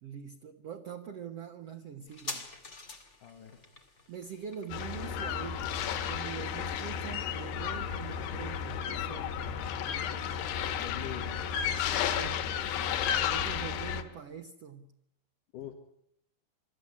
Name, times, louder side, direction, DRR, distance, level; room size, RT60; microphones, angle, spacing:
voice 1, 0.0-2.5 4.1-9.5 12.1-12.5 13.2-14.9, right 8 dB, 85° right, 5 dB, 1.3 m, -44 dB
sound 1, 2.1-9.2 9.4-9.5, left 3 dB, 25° left, 1.8 m, -48 dB
voice 2, 3.2-3.6 10.8-11.5 15.5-15.7, left 10 dB, 60° left, 4 dB, 3.1 m, -43 dB
sound 2, 4.7-14.0, left 8 dB, 90° left, 3.3 m, -33 dB
25.5 x 13.0 x 9.8 m, 0.77 s
omnidirectional pair, 4.6 m